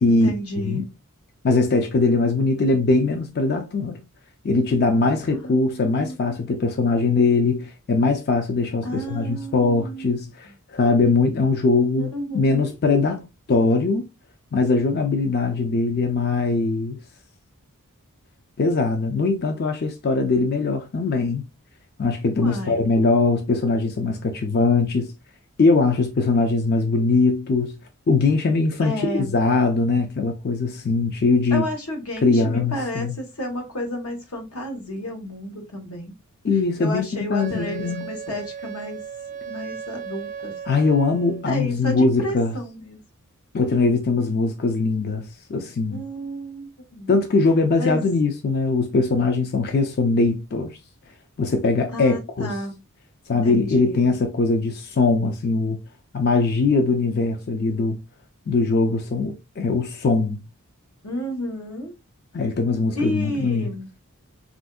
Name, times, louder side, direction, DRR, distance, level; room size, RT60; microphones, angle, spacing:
voice 1, 0.1-0.9 5.3-6.4 8.8-10.2 12.0-12.7 22.4-22.8 28.8-29.4 31.5-36.2 36.8-39.0 39.5-40.5 41.4-43.0 45.9-47.1 47.8-48.0 51.9-52.8 53.3-54.0 61.0-61.9 62.9-63.9, equal, 80° left, 1.1 m, -31 dB
voice 2, 1.4-4.0 4.4-14.1 14.5-17.0 18.6-21.4 22.0-25.1 25.6-27.7 28.1-31.7 32.2-33.2 36.4-38.1 40.7-42.5 43.5-46.0 47.1-50.8 51.4-52.5 53.3-55.8 56.1-58.0 58.5-60.4 62.3-63.7, left 3 dB, 45° left, 0.4 m, -21 dB
Wind instrument woodwind instrument, 37.4-41.5, right 7 dB, 35° right, 0.4 m, -36 dB
3.4 x 2.6 x 2.3 m
head